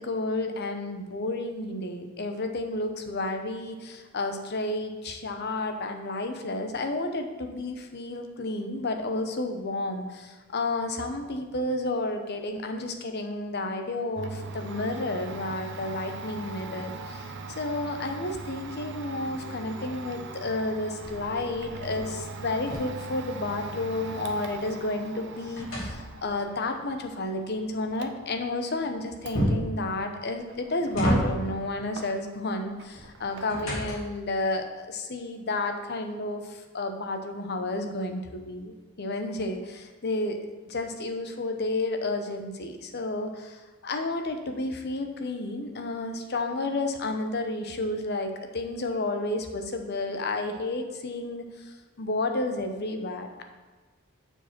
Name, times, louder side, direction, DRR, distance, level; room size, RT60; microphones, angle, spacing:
voice 1, 0.0-40.4 40.6-53.4, left 2 dB, 50° left, 5 dB, 0.8 m, -31 dB
Domestic sounds home sounds, 14.1-32.5 32.8-33.8, right 3 dB, 60° right, 0.6 m, -41 dB
sound 1, 21.0-23.9 24.3-26.5 29.3-29.8 30.5-31.7 32.9-34.3, equal, 85° left, 2.7 m, -31 dB
6.8 x 4.9 x 6.0 m, 1.3 s
head